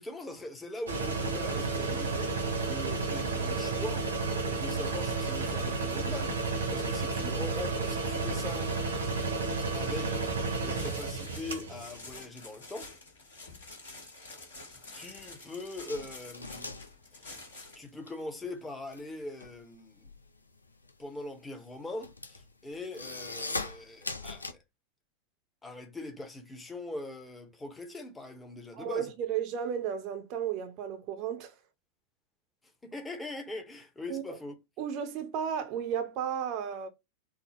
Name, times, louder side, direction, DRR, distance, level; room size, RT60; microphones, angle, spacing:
voice 1, 0.0-4.2 4.5-8.7 9.7-12.9 14.9-16.8 17.7-20.1 21.0-24.6 25.6-29.1 32.8-34.5, left 2 dB, 10° left, 0.8 m, -42 dB
sound 1, 0.9-12.0, right 3 dB, 70° right, 0.8 m, -32 dB
sound 2, 10.7-17.9, left 3 dB, 65° left, 1.3 m, -48 dB
sound 3, 15.9-18.1 18.4-24.5, left 3 dB, 80° left, 0.4 m, -40 dB
voice 2, 28.8-31.5 34.1-34.2 34.8-36.9, right 8 dB, 40° right, 0.6 m, -33 dB
3.6 x 2.0 x 4.0 m
figure-of-eight pair, 90°, 0 cm